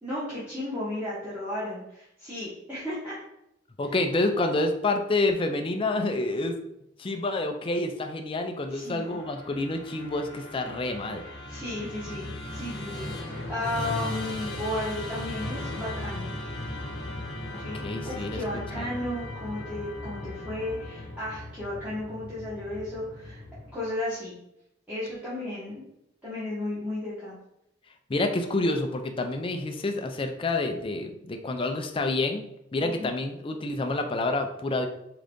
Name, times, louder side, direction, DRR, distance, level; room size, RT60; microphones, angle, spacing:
voice 1, 0.0-3.2 8.7-9.2 11.5-16.3 17.6-23.4 23.7-24.3 24.9-25.8 26.2-27.4 32.8-33.1, left 1 dB, 10° right, -11 dB, 1.2 m, -34 dB
voice 2, 3.8-6.6 7.0-11.2 17.5-18.4 18.7-18.9 28.1-32.4 32.7-34.9, left 2 dB, 25° left, 5 dB, 0.4 m, -28 dB
Musical instrument, 8.7-24.0, left 1 dB, 60° left, 1.1 m, -37 dB
3.9 x 3.7 x 3.5 m, 0.82 s
head